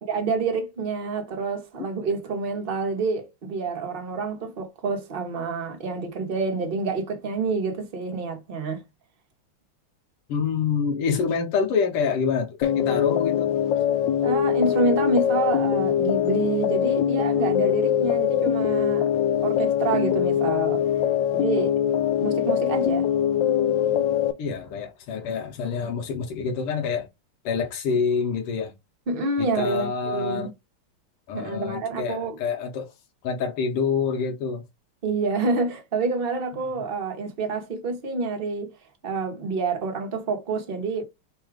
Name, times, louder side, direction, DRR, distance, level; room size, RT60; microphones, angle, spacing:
voice 1, 0.0-8.8 14.2-19.1 19.4-20.8 21.3-21.8 22.2-23.1 29.1-30.5 31.3-32.4 35.0-38.7 39.0-41.0, right 3 dB, 40° right, 0.7 m, -27 dB
voice 2, 10.3-13.5 24.4-27.1 27.5-28.7 29.4-30.5 31.3-32.9 33.2-34.6, left 6 dB, 90° left, 1.8 m, -26 dB
sound 1, 12.6-24.3, left 9 dB, 75° left, 1.1 m, -23 dB
4.0 x 2.3 x 4.7 m
omnidirectional pair, 2.4 m